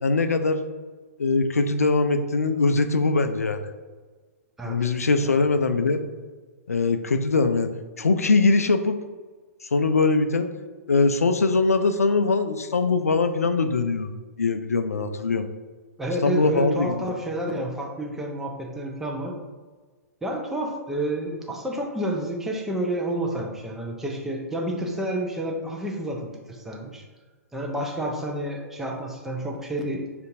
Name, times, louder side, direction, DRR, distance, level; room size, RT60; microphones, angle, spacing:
voice 1, 0.0-0.6 1.2-3.7 4.7-6.0 6.7-7.7 8.0-9.0 9.6-10.5 10.9-14.1 14.4-15.5 16.2-17.0, left 3 dB, 75° left, 8 dB, 0.4 m, -22 dB
voice 2, 16.0-19.4 20.2-27.0 27.5-30.0, right 1 dB, 5° right, 0 dB, 0.5 m, -30 dB
6.5 x 2.5 x 2.6 m, 1.4 s
figure-of-eight pair, 110°, 8 cm